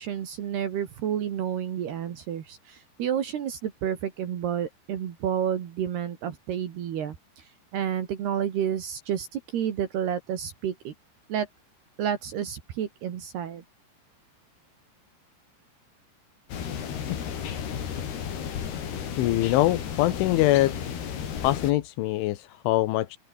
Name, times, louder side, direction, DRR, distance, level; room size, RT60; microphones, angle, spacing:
voice 1, 0.0-7.2 7.7-10.9 11.3-11.5 12.0-13.6, right 9 dB, 65° right, 4.0 m, -30 dB
sound 1, 16.5-21.7, left 8 dB, 60° left, 5.1 m, -33 dB
voice 2, 19.2-20.7 21.4-23.2, left 16 dB, 85° left, 3.6 m, -23 dB
open air
omnidirectional pair, 5.3 m